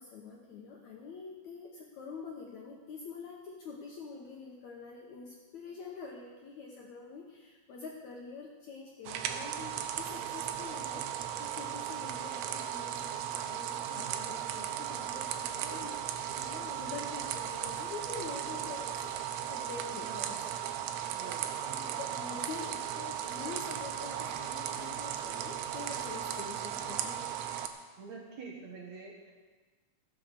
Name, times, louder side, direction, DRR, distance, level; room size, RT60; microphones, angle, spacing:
voice 1, 0.0-16.0 16.3-19.2 19.5-20.4 21.6-27.2, left 4 dB, 70° left, -1 dB, 1.9 m, -46 dB
sound 1, 9.1-27.7, right 10 dB, 90° right, 2.8 m, -36 dB
voice 2, 20.0-20.6 21.1-21.6 23.9-24.3 28.0-29.3, right 4 dB, 60° right, -2 dB, 2.2 m, -47 dB
15.5 x 6.8 x 6.8 m, 1.3 s
omnidirectional pair, 4.5 m